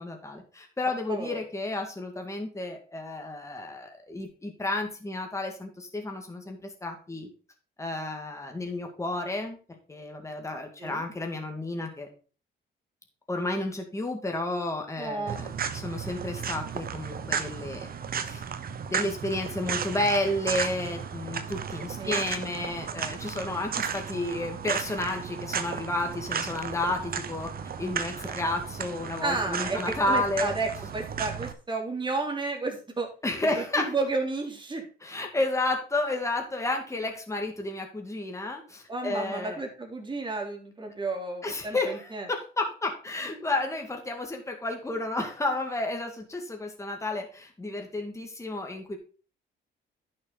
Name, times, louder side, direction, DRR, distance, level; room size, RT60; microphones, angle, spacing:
voice 1, 0.0-7.3 7.8-9.6 9.9-12.1 13.3-17.9 18.2-18.4 18.9-27.5 27.8-30.5 33.2-33.9 35.0-39.6 41.4-49.0, left 2 dB, 15° left, 3 dB, 2.0 m, -31 dB
voice 2, 1.1-1.4 10.8-11.0 15.0-15.4 22.0-22.2 29.2-33.1 33.5-34.9 38.9-42.3, right 3 dB, 25° right, 2 dB, 3.1 m, -32 dB
sound 1, 15.3-31.5, right 7 dB, 50° right, 1.1 m, -34 dB
11.0 x 6.6 x 4.0 m, 0.37 s
cardioid pair, 90°, 20 cm